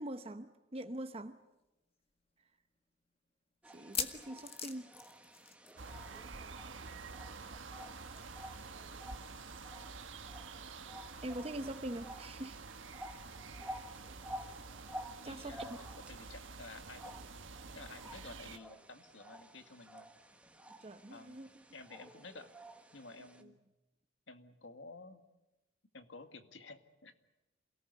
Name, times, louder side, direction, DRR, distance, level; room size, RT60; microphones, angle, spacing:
voice 1, 0.0-1.4 3.7-4.9 11.2-12.6 15.2-15.7 20.8-21.5, right 1 dB, 30° right, 9 dB, 0.9 m, -43 dB
sound 1, 1.5-1.6 2.2-2.3 3.7-5.9 6.1-6.4 6.6-6.7 8.2-8.3, left 7 dB, 30° left, 1.7 m, -41 dB
sound 2, 3.6-23.4, equal, 5° right, 1.5 m, -52 dB
sound 3, 5.8-18.6, right 4 dB, 90° right, 1.3 m, -49 dB
voice 2, 15.2-17.3 17.7-20.1 21.1-22.5 22.9-23.6 24.3-25.2 25.9-27.1, left 3 dB, 75° left, 8 dB, 2.0 m, -52 dB
28.0 x 18.5 x 9.7 m, 0.99 s
head